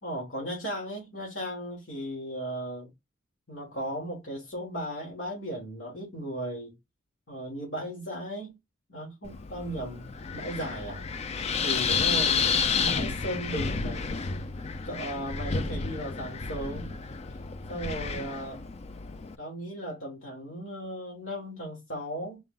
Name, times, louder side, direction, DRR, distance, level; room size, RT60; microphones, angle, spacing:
voice 1, 0.0-2.9 3.5-6.7 7.3-8.5 8.9-11.0 11.6-12.4 12.8-14.1 14.8-16.9 17.7-18.6 19.4-22.4, right 1 dB, 75° left, 1.8 m, -36 dB
Wind, 9.2-19.3, left 5 dB, 35° left, 0.4 m, -31 dB
4.3 x 2.1 x 3.7 m
head